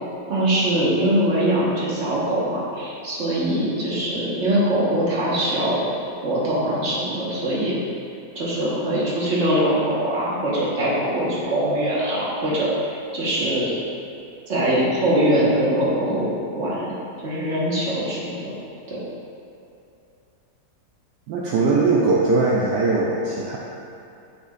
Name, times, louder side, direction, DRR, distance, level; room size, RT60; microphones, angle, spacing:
voice 1, 0.3-5.8 6.2-7.8 8.3-13.7 14.5-17.0 17.2-18.5 18.9-19.0, right 1 dB, 40° right, -7 dB, 1.6 m, -22 dB
voice 2, 21.3-23.6, right 3 dB, 75° right, -4 dB, 1.2 m, -20 dB
8.5 x 5.8 x 2.5 m, 2.7 s
omnidirectional pair, 2.0 m